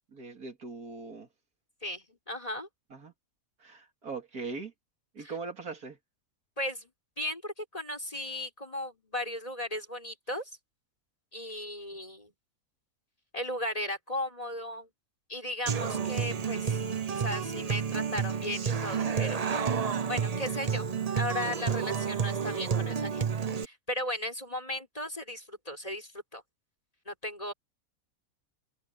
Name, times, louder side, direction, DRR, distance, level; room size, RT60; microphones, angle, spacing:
voice 1, 0.1-1.3 2.9-3.1 3.6-4.7 5.1-6.0, right 4 dB, 80° right, 3.3 m, -40 dB
voice 2, 1.8-2.7 5.2-5.3 6.6-6.9 7.2-10.5 11.3-12.3 13.3-14.9 15.3-16.8 17.1-19.5 20.1-20.9 21.1-26.4 27.1-27.5, left 1 dB, 25° left, 5.6 m, -36 dB
Human voice / Acoustic guitar, 15.7-23.6, right 6 dB, 40° right, 0.6 m, -30 dB
omnidirectional pair, 1.6 m